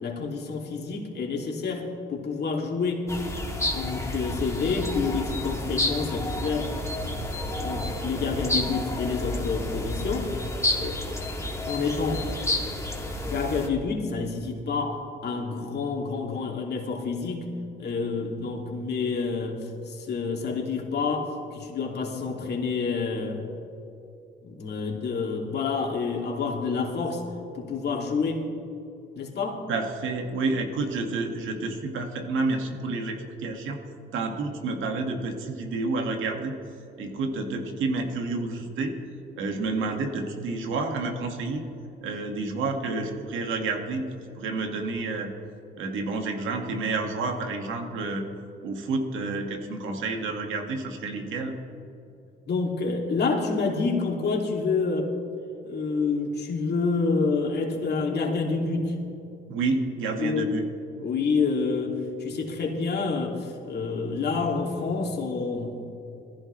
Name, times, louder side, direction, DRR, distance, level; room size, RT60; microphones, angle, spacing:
voice 1, 0.0-3.1 3.6-6.7 7.6-10.3 10.8-11.1 11.4-12.2 13.3-17.5 17.8-19.6 19.9-23.4 24.4-27.2 27.5-28.4 29.2-29.6 52.5-55.1 55.6-58.9 60.2-60.5 61.0-65.8, left 4 dB, 55° left, 0 dB, 2.8 m, -28 dB
sound 1, 3.1-13.7, left 1 dB, 15° left, 2.4 m, -30 dB
voice 2, 29.7-33.8 34.1-36.5 37.0-38.9 39.4-41.7 42.0-44.1 44.4-45.3 45.8-48.3 48.6-51.5 59.5-60.7, right 3 dB, 80° right, 3 dB, 2.1 m, -29 dB
20.5 x 15.0 x 3.3 m, 2.7 s
cardioid pair, 90°, 20 cm